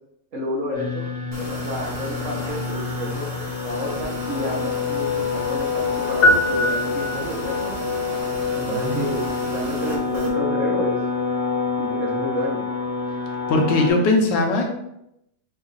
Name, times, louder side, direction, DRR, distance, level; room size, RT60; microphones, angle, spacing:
voice 1, 0.3-1.1 1.3-3.3 3.6-7.7 8.5-11.0 11.8-12.6, equal, 55° right, -3 dB, 1.1 m, -30 dB
sound 1, 0.7-13.9, left 5 dB, 55° left, 1.9 m, -27 dB
sound 2, 1.3-10.3, equal, 30° right, 0.7 m, -36 dB
sound 3, 6.2-7.7, left 1 dB, 40° left, 1.0 m, -21 dB
voice 2, 8.6-9.1 13.5-14.7, left 2 dB, 75° left, 1 dB, 1.4 m, -20 dB
4.9 x 2.4 x 3.9 m, 0.81 s
omnidirectional pair, 2.0 m